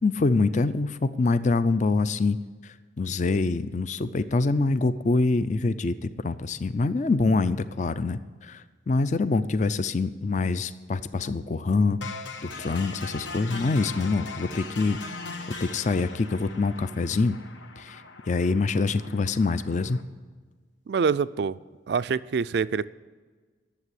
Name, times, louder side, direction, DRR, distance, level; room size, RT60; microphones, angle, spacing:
voice 1, 0.0-2.4 2.6-12.0 12.4-15.0 15.6-17.4 17.8-18.0 18.3-20.0, left 3 dB, 40° left, 13 dB, 0.4 m, -25 dB
sound 1, 12.0-20.0, left 3 dB, 80° left, 1.1 m, -40 dB
voice 2, 20.9-21.6 21.9-22.9, right 5 dB, 60° right, 16 dB, 0.3 m, -25 dB
11.0 x 7.5 x 9.8 m, 1.4 s
head